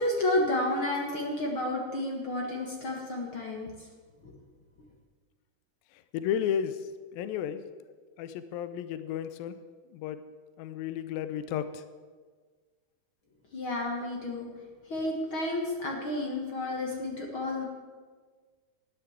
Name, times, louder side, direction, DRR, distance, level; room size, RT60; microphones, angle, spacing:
voice 1, 0.0-3.7 4.2-4.3 13.5-14.5 14.9-17.7, left 1 dB, 45° left, 0 dB, 1.9 m, -31 dB
voice 2, 5.9-7.6 8.2-9.6 9.9-10.2 10.6-11.8, left 9 dB, 85° left, 11 dB, 2.5 m, -33 dB
13.0 x 10.5 x 8.0 m, 1.5 s
omnidirectional pair, 4.1 m